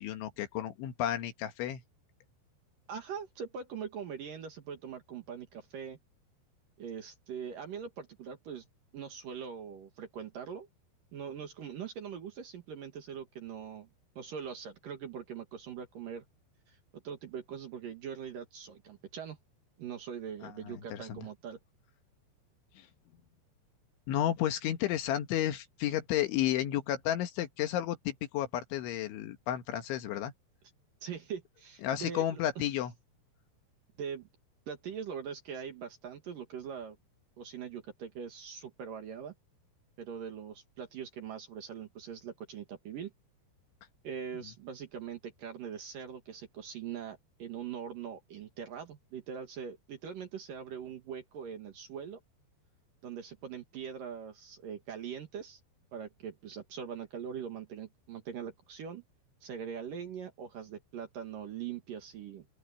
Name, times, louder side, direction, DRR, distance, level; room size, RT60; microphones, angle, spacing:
voice 1, 0.0-1.8 20.4-21.2 24.1-30.3 31.8-32.9, left 11 dB, 75° left, 4.0 m, -32 dB
voice 2, 2.9-6.0 6.8-8.7 8.9-10.7 11.1-13.9 14.2-16.2 16.7-19.4 19.8-21.6 31.0-32.7 34.0-34.3 34.7-37.0 37.4-39.3 40.0-43.1 44.0-52.2 53.0-55.6 55.9-59.0 59.4-62.5, right 7 dB, 55° right, 2.8 m, -42 dB
open air
omnidirectional pair, 5.5 m